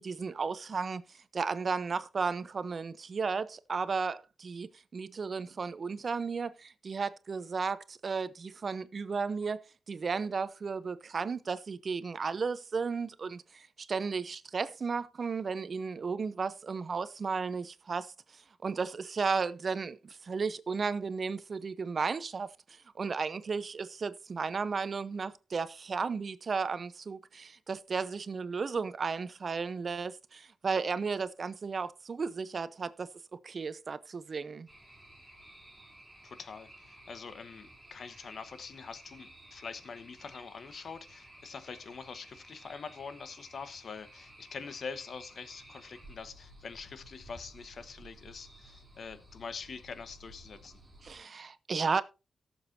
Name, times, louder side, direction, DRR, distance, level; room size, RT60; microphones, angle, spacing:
voice 1, 0.0-18.1 18.6-22.5 23.0-34.7 51.0-52.0, right 5 dB, 50° right, 0.8 m, -34 dB
sound 1, 34.7-51.2, right 1 dB, 5° right, 3.3 m, -55 dB
voice 2, 36.2-50.8, left 5 dB, 65° left, 1.1 m, -44 dB
18.0 x 7.2 x 2.7 m
cardioid pair, 90°, 0 cm